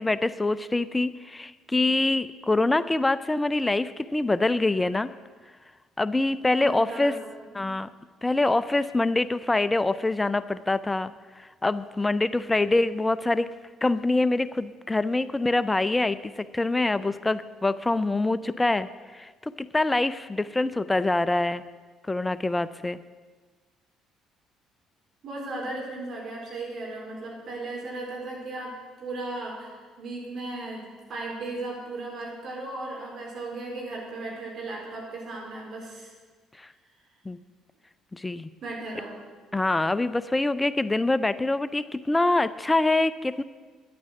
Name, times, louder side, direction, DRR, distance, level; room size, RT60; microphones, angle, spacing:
voice 1, 0.0-5.1 6.0-7.2 7.5-7.9 8.2-13.5 13.8-21.6 22.1-23.0 36.6-36.7 37.3-37.4 38.1-38.5 39.5-43.4, left 2 dB, 15° left, 15 dB, 0.5 m, -25 dB
voice 2, 6.6-7.3 7.6-7.8 25.2-36.1 38.6-39.2, right 2 dB, 55° right, -2 dB, 4.1 m, -36 dB
10.5 x 9.4 x 7.8 m, 1.4 s
hypercardioid pair, 55°, 0 cm